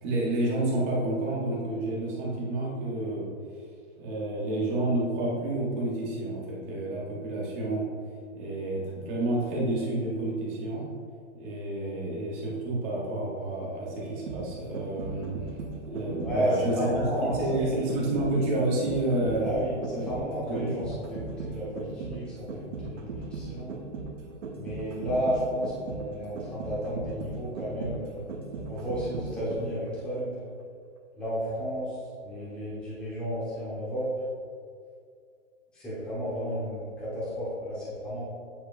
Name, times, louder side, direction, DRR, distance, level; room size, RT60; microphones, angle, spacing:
voice 1, 0.0-3.3 4.0-7.8 8.3-10.8 11.3-15.3 15.8-19.5 19.9-20.1 20.5-20.7, right 2 dB, 15° right, -4 dB, 0.5 m, -29 dB
sound 1, 14.0-29.9 30.2-30.3, right 4 dB, 85° right, 1.0 m, -38 dB
voice 2, 16.2-17.4 19.4-23.8 24.6-28.2 28.7-30.3 31.2-34.1 35.7-38.2, equal, 5° left, -11 dB, 0.9 m, -32 dB
8.4 x 4.8 x 2.4 m, 2.2 s
hypercardioid pair, 165°, 37 cm